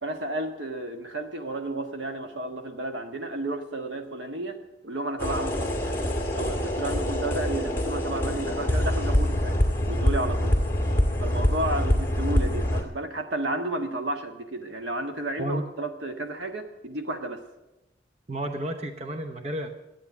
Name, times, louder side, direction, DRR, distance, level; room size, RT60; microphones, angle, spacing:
voice 1, 0.0-10.6 11.2-17.4, right 1 dB, 85° right, 5 dB, 1.6 m, -32 dB
sound 1, 5.2-12.8, left 1 dB, 10° left, 2.0 m, -25 dB
voice 2, 18.3-19.7, right 1 dB, 35° right, 7 dB, 0.8 m, -31 dB
12.0 x 8.9 x 8.3 m, 0.99 s
head